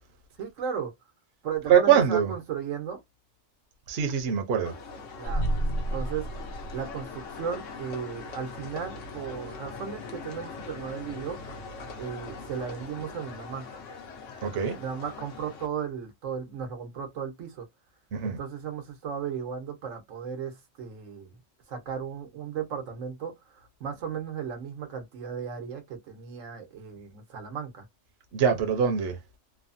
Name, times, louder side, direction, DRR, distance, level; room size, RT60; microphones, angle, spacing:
voice 1, 0.4-0.9 1.4-3.0 5.2-6.3 6.7-11.4 12.0-13.7 14.7-17.6 18.2-21.3 21.7-23.4 23.8-27.8, right 7 dB, 90° right, 1.3 m, -35 dB
voice 2, 1.7-2.3 3.9-4.7 14.4-14.7 18.1-18.4 28.3-29.1, right 8 dB, 60° right, 0.8 m, -23 dB
sound 1, 4.6-15.7, left 4 dB, 75° left, 1.1 m, -42 dB
sound 2, 5.2-7.5, right 1 dB, 55° left, 0.9 m, -31 dB
3.2 x 2.0 x 2.5 m
omnidirectional pair, 1.3 m